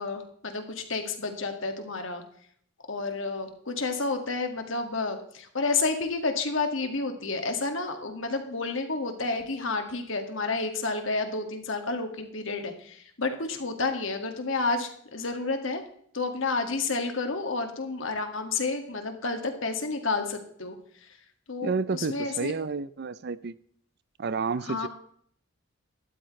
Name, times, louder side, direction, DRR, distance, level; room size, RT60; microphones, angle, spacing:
voice 1, 0.0-2.2 2.9-15.8 16.1-20.8 21.5-22.5 24.6-24.9, left 3 dB, 65° left, 5 dB, 2.0 m, -30 dB
voice 2, 21.6-23.5 24.2-24.9, right 4 dB, 50° right, 17 dB, 0.5 m, -30 dB
13.0 x 12.5 x 3.2 m, 0.63 s
head